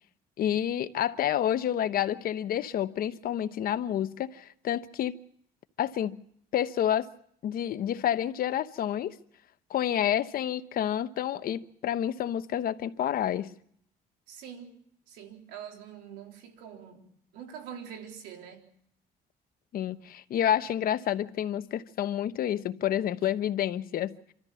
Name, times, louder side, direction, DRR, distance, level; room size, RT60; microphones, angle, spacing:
voice 1, 0.4-5.1 5.8-6.2 6.5-7.1 7.4-9.1 9.7-13.5 19.7-24.2, left 10 dB, 60° left, 1.0 m, -29 dB
voice 2, 14.3-14.7 15.1-18.7, right 8 dB, 90° right, 3.9 m, -45 dB
26.5 x 13.5 x 7.1 m
cardioid pair, 110°, 17 cm